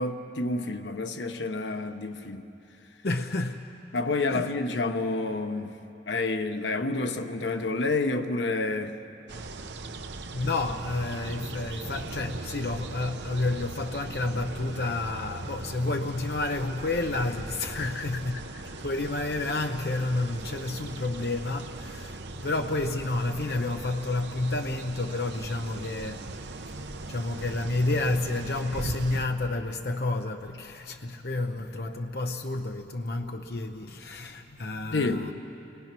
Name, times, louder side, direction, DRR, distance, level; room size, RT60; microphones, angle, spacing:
voice 1, 0.0-2.5 3.9-5.7 6.1-9.0 17.7-18.1 34.9-35.3, left 3 dB, 85° left, 7 dB, 1.1 m, -29 dB
voice 2, 3.0-3.7 4.3-4.5 10.3-26.3 26.7-26.8 27.1-35.3, left 2 dB, 60° left, 5 dB, 0.8 m, -30 dB
sound 1, 9.3-29.3, right 2 dB, 80° right, 0.9 m, -39 dB
29.5 x 22.0 x 6.0 m, 2.9 s
head